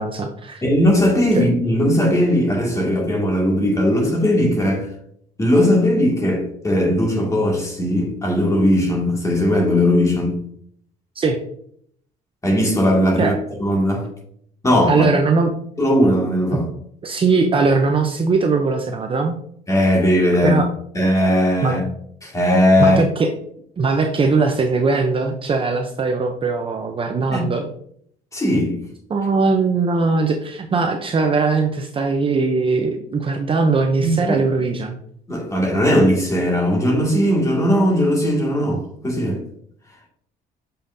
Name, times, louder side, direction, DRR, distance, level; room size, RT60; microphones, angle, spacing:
voice 1, 0.0-0.6 1.4-1.5 11.2-11.4 13.2-13.4 14.9-15.5 16.5-16.6 17.0-19.4 20.4-20.7 21.6-21.7 22.8-23.3 23.8-27.7 29.1-35.0, right 4 dB, 30° right, 4 dB, 0.7 m, -20 dB
voice 2, 0.6-4.9 5.4-10.4 12.4-13.3 13.6-14.1 14.6-15.1 15.8-16.7 19.7-20.6 20.9-21.8 22.2-23.0 27.3-27.4 28.3-28.8 34.0-34.4 35.3-39.4, equal, 20° left, -1 dB, 2.2 m, -18 dB
6.9 x 5.7 x 2.7 m, 0.66 s
cardioid pair, 110°, 17 cm